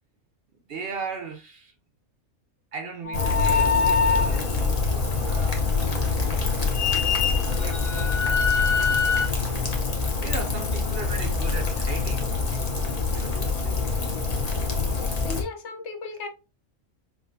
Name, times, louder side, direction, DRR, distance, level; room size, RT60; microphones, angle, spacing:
voice 1, 0.7-1.7 2.7-4.6 5.2-5.7 6.2-7.0 7.5-8.3 10.2-12.8 13.1-13.8, right 4 dB, 55° right, 0.7 m, -37 dB
sound 1, 3.0-4.4 6.7-9.3, left 6 dB, 90° left, 1.3 m, -24 dB
Rain, 3.1-15.4, left 4 dB, 35° left, 0.8 m, -26 dB
voice 2, 14.9-16.3, left 4 dB, 65° left, 1.0 m, -36 dB
5.8 x 2.4 x 2.6 m
omnidirectional pair, 1.4 m